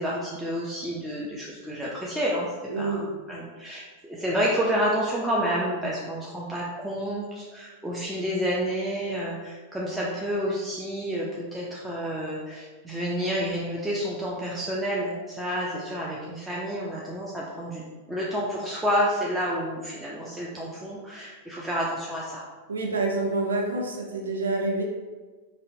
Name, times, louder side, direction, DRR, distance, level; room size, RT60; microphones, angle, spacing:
voice 1, 0.0-17.8 18.1-22.4, equal, 5° right, -5 dB, 0.4 m, -29 dB
voice 2, 2.7-3.1 22.7-24.8, right 2 dB, 90° right, 0 dB, 0.5 m, -27 dB
2.7 x 2.0 x 2.7 m, 1.3 s
hypercardioid pair, 105°, 0 cm